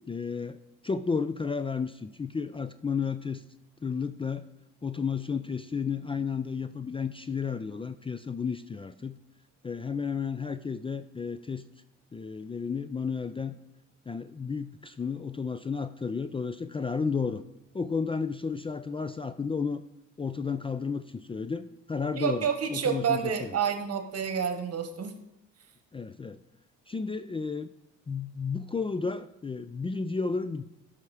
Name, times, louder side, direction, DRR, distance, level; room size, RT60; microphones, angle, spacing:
voice 1, 0.1-0.6 0.8-3.4 3.8-4.5 4.8-9.2 9.6-11.6 12.1-13.5 14.1-17.4 17.7-19.8 20.2-23.5 25.9-26.4 26.9-27.7 28.1-30.6, left 5 dB, 20° left, 12 dB, 0.4 m, -32 dB
voice 2, 22.1-25.1, right 7 dB, 55° right, 8 dB, 1.4 m, -29 dB
11.5 x 5.8 x 4.8 m, 0.94 s
cardioid pair, 90°, 30 cm